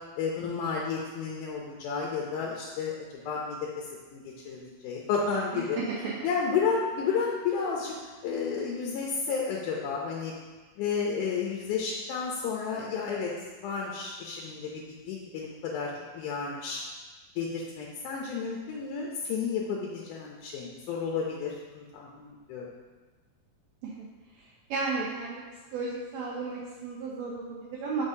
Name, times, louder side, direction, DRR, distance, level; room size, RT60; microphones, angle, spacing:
voice 1, 0.2-3.6 4.1-5.8 6.2-8.0 8.2-10.3 10.8-13.3 13.6-16.8 17.4-22.7, left 5 dB, 80° left, -2 dB, 2.1 m, -32 dB
voice 2, 5.5-6.2 23.8-24.1 24.4-24.5 24.7-25.4 25.7-28.0, right 4 dB, 80° right, -3 dB, 1.6 m, -33 dB
6.5 x 5.4 x 2.7 m, 1.3 s
omnidirectional pair, 3.7 m